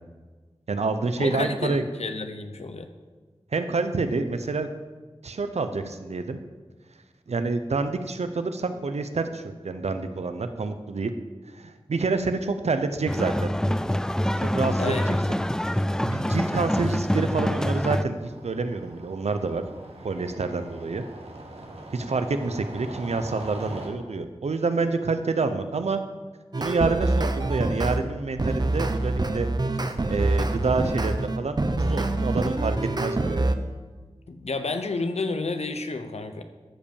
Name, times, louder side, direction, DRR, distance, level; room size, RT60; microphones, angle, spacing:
voice 1, 0.7-1.8 3.5-4.7 5.2-6.4 7.3-11.1 11.6-13.5 14.4-15.4 16.0-19.6 20.0-21.0 21.9-26.0 26.6-29.5 29.8-33.6, right 3 dB, 90° right, 9 dB, 0.8 m, -28 dB
voice 2, 1.2-2.9 14.8-15.2 34.3-36.4, left 3 dB, 80° left, 8 dB, 0.9 m, -30 dB
sound 1, 13.1-18.0, left 1 dB, 5° left, 0.3 m, -25 dB
sound 2, 15.5-23.9, right 2 dB, 70° right, 1.6 m, -43 dB
sound 3, 26.5-28.0 28.4-33.5, right 2 dB, 40° right, 0.8 m, -25 dB
13.5 x 5.3 x 7.1 m, 1.4 s
wide cardioid pair, 65°, 11 cm